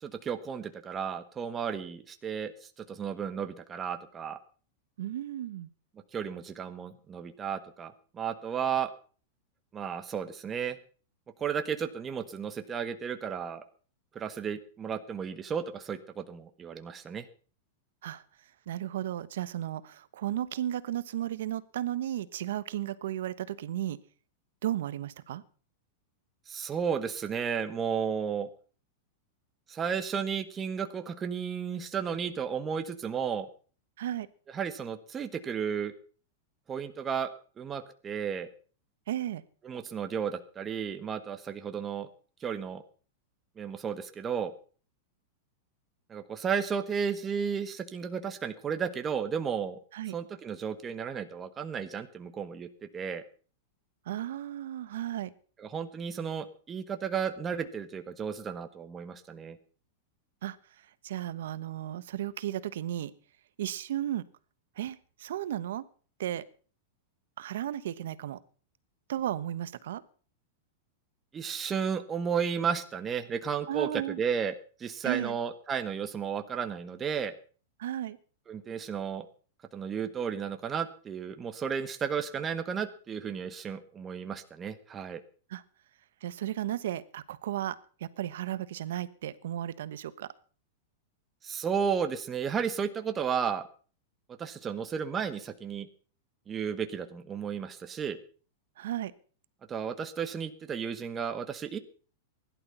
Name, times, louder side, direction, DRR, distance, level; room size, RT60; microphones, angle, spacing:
voice 1, 0.0-4.4 6.1-8.9 9.7-10.8 11.4-13.6 14.1-17.3 26.5-28.5 29.7-33.5 34.5-35.9 36.7-37.3 37.6-38.5 39.6-42.1 42.4-42.8 43.6-44.5 46.1-49.8 50.1-53.2 55.6-59.6 71.3-74.5 74.8-77.3 78.5-79.3 79.7-85.2 91.4-93.7 94.4-95.9 96.5-98.2 99.7-101.8, right 7 dB, 20° right, 9 dB, 1.4 m, -33 dB
voice 2, 5.0-5.7 18.0-18.2 18.7-24.0 24.6-25.4 34.0-34.3 39.1-39.4 49.9-50.1 54.1-55.3 60.4-60.6 61.0-63.1 63.6-64.2 64.8-65.8 66.2-66.4 67.4-68.4 69.1-70.0 73.7-74.2 75.0-75.4 77.8-78.2 85.5-85.6 86.2-90.3 98.8-99.1, right 12 dB, 75° right, 17 dB, 1.1 m, -34 dB
16.5 x 11.5 x 5.7 m, 0.41 s
hypercardioid pair, 130°, 0 cm